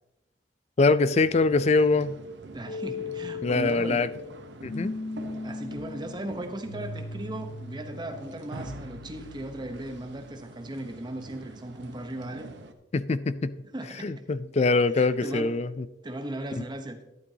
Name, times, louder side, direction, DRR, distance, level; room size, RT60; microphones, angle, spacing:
voice 1, 0.8-2.2 3.4-4.1 4.6-4.9 12.9-13.6 14.0-15.9, left 3 dB, 35° left, 0.4 m, -23 dB
sound 1, 1.1-12.7, right 2 dB, 75° right, 0.9 m, -45 dB
voice 2, 2.5-4.1 5.4-12.5 13.7-14.3 15.0-15.5 16.0-17.0, right 1 dB, 25° right, 0.9 m, -37 dB
sound 2, 2.7-10.5, left 4 dB, 80° left, 1.0 m, -39 dB
12.0 x 11.0 x 2.8 m
head